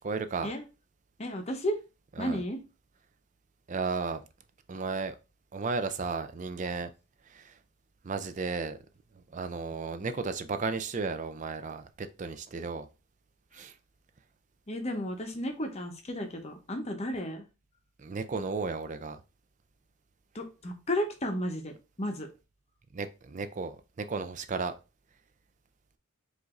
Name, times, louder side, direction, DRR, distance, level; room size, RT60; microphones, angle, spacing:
voice 1, 0.0-0.5 2.2-2.4 3.7-4.2 4.7-5.2 5.5-6.9 7.3-7.6 8.0-8.8 9.1-12.9 13.5-13.8 18.0-19.2 22.9-24.7, right 4 dB, 35° right, 0.4 m, -34 dB
voice 2, 1.2-1.8 2.2-2.6 14.7-17.4 20.3-22.3, equal, 30° left, 0.8 m, -33 dB
4.9 x 2.6 x 3.7 m
head